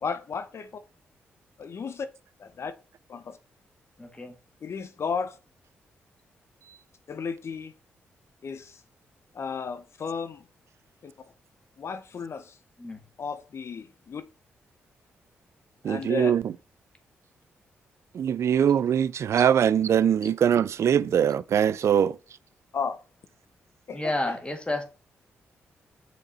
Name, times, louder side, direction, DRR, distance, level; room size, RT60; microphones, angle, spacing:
voice 1, 0.0-0.8 1.6-2.1 2.4-2.7 3.1-3.4 4.6-5.4 7.1-7.7 8.4-8.8 9.3-10.4 11.0-11.1 11.8-12.6 13.2-14.2 15.9-16.3 22.7-23.0 23.9-24.4, left 5 dB, 55° left, 0.8 m, -34 dB
voice 2, 4.0-4.4 12.8-13.0 23.9-24.8, left 1 dB, 20° left, 1.9 m, -30 dB
voice 3, 15.8-16.5 18.1-22.2, right 8 dB, 65° right, 0.4 m, -22 dB
6.1 x 5.2 x 4.3 m
hypercardioid pair, 45°, 5 cm